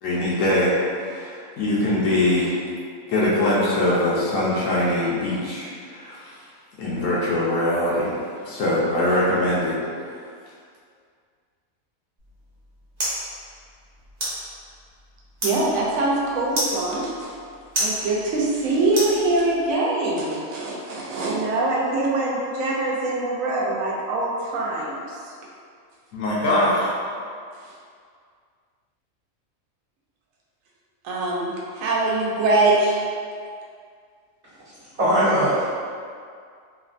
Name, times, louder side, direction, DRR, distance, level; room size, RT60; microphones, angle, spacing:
voice 1, 0.0-2.6 3.1-6.4 6.8-8.1 8.4-9.8 26.1-26.9, left 1 dB, 75° left, -8 dB, 1.0 m, -22 dB
sound 1, 12.2-19.7, right 1 dB, 40° right, 0.7 m, -32 dB
voice 2, 15.4-17.3 17.8-25.2 31.0-33.0, right 2 dB, 80° right, -4 dB, 1.0 m, -23 dB
voice 3, 35.0-35.7, equal, 55° right, -13 dB, 1.0 m, -19 dB
3.2 x 2.1 x 2.4 m, 2.2 s
omnidirectional pair, 1.4 m